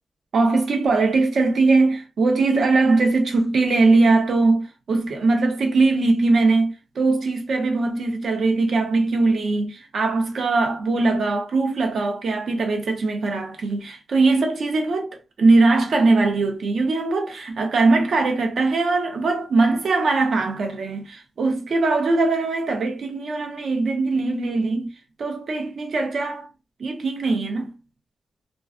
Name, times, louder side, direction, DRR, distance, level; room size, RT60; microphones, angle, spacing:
voice 1, 0.3-15.1 15.4-24.9 25.2-26.5 26.8-27.8, right 3 dB, 60° right, 0.6 m, -21 dB
2.3 x 2.3 x 2.3 m
wide cardioid pair, 140°, 0 cm